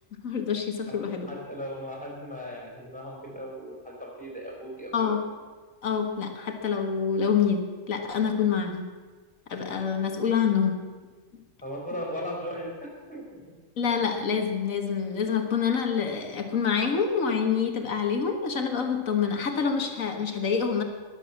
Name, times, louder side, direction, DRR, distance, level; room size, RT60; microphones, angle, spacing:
voice 1, 0.2-1.3 4.9-5.2 5.8-8.8 9.5-10.8 13.8-20.8, left 6 dB, 90° left, 5 dB, 2.0 m, -26 dB
voice 2, 1.3-5.2 11.6-13.4, equal, 5° left, -2 dB, 4.5 m, -37 dB
21.0 x 7.8 x 7.4 m, 1.4 s
omnidirectional pair, 1.4 m